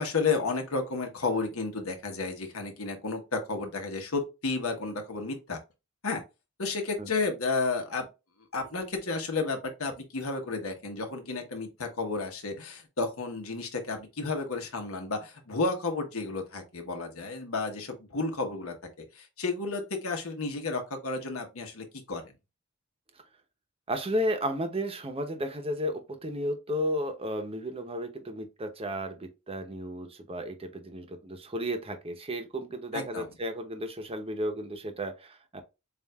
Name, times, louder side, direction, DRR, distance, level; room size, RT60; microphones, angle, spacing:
voice 1, 0.0-5.6 6.0-6.2 6.6-8.1 8.5-22.2 32.9-33.3, left 3 dB, 85° left, 1.2 m, -32 dB
voice 2, 23.9-35.6, equal, 30° right, 0.8 m, -33 dB
7.2 x 2.5 x 2.3 m
head